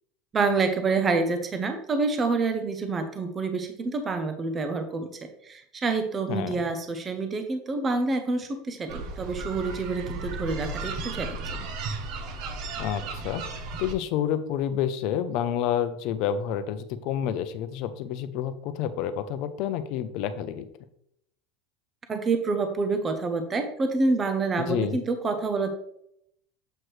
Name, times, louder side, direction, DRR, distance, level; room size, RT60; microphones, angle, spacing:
voice 1, 0.3-11.6 22.1-25.7, right 3 dB, 20° right, 7 dB, 0.5 m, -27 dB
voice 2, 6.3-6.6 12.8-13.4 13.8-20.7 24.6-25.0, left 9 dB, 50° left, 11 dB, 0.5 m, -29 dB
sound 1, 8.9-13.9, right 3 dB, 45° right, 0.8 m, -35 dB
7.5 x 4.7 x 3.2 m, 0.73 s
supercardioid pair, 165°, 0 cm